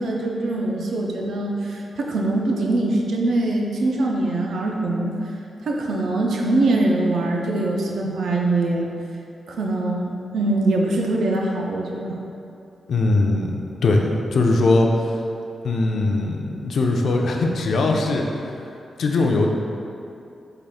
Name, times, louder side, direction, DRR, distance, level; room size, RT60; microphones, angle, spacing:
voice 1, 0.0-5.2 5.6-8.9 9.5-12.2, right 2 dB, 80° right, -1 dB, 0.4 m, -23 dB
voice 2, 12.9-14.9 15.6-18.2 19.0-19.5, left 2 dB, 65° left, 1 dB, 0.4 m, -20 dB
3.6 x 2.3 x 3.4 m, 2.6 s
wide cardioid pair, 130°, 0 cm